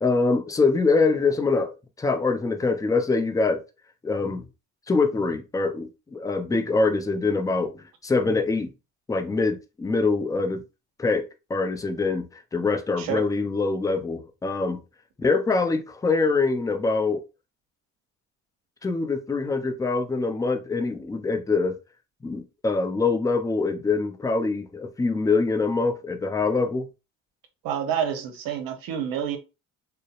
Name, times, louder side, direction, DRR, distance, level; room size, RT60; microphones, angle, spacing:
voice 1, 0.0-3.6 4.0-4.5 4.9-8.7 9.1-10.6 11.0-11.2 11.5-14.8 15.2-17.2 18.8-21.8 22.2-26.9, left 3 dB, 10° left, 0.4 m, -24 dB
voice 2, 27.6-29.4, right 8 dB, 65° right, 0.8 m, -28 dB
2.6 x 2.0 x 2.4 m
supercardioid pair, 75°, 36 cm